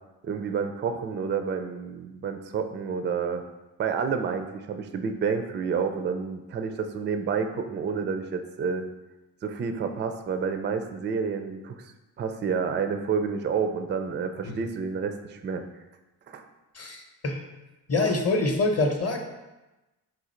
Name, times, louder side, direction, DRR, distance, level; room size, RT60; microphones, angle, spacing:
voice 1, 0.2-3.4 3.8-8.8 9.4-15.6 16.3-16.4, right 6 dB, 25° right, 7 dB, 0.3 m, -29 dB
voice 2, 16.7-17.4 17.9-19.2, left 2 dB, 35° left, 3 dB, 0.8 m, -25 dB
3.8 x 2.5 x 4.3 m, 1.1 s
supercardioid pair, 50°, 46 cm